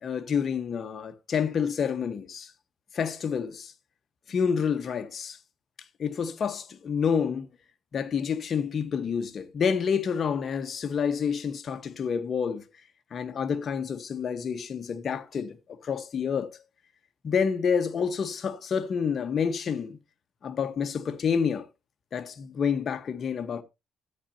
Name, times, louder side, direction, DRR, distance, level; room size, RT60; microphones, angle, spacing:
voice 1, 0.0-2.5 2.9-3.7 4.3-5.4 6.0-7.5 7.9-12.6 13.1-16.6 17.2-20.0 20.4-21.7 22.1-23.6, left 6 dB, 50° left, 1.2 m, -28 dB
13.5 x 8.8 x 2.8 m
cardioid pair, 90°, 0 cm